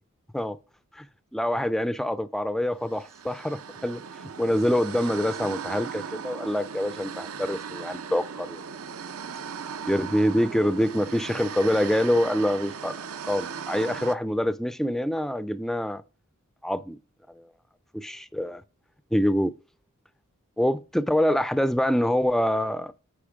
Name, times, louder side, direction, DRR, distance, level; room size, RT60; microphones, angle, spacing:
voice 1, 1.3-4.0 4.4-8.6 9.9-12.9 13.3-16.0 16.6-17.0 17.4-17.5 17.9-18.6 19.1-19.5 20.6-22.9, equal, ahead, 0.3 m, -25 dB
sound 1, 2.9-14.1, right 6 dB, 70° right, 0.6 m, -38 dB
8.6 x 5.1 x 4.9 m
head